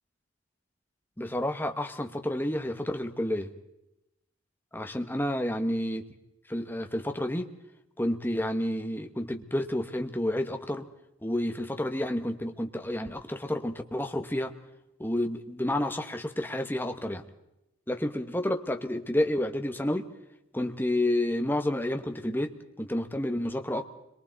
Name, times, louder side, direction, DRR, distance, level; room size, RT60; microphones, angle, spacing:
voice 1, 1.2-3.5 4.7-6.0 6.5-7.5 8.0-10.9 11.2-14.5 15.0-17.2 17.9-20.1 20.5-23.9, left 1 dB, 10° left, 5 dB, 1.2 m, -30 dB
29.5 x 23.0 x 4.1 m, 0.88 s
head